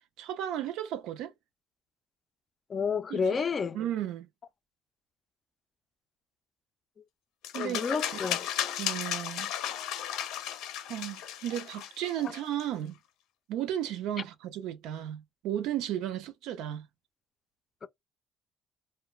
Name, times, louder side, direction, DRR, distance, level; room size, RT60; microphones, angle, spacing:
voice 1, 0.2-1.3 3.1-3.4 3.7-4.3 7.5-7.8 8.1-8.2 8.8-9.5 10.9-13.0 13.5-16.9, right 11 dB, 80° right, 0.4 m, -34 dB
voice 2, 2.7-3.8 7.6-8.4 17.8-17.9, left 5 dB, 35° left, 0.3 m, -30 dB
sound 1, 7.4-12.6, left 10 dB, 85° left, 0.6 m, -35 dB
2.2 x 2.1 x 3.0 m
cardioid pair, 110°, 0 cm